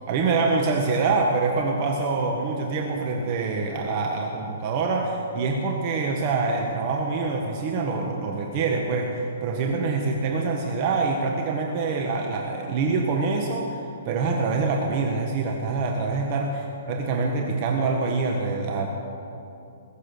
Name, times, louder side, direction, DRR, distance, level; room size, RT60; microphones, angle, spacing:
voice 1, 0.1-18.9, right 4 dB, 35° right, 1 dB, 1.4 m, -25 dB
21.5 x 7.4 x 7.0 m, 2.7 s
hypercardioid pair, 155°, 0 cm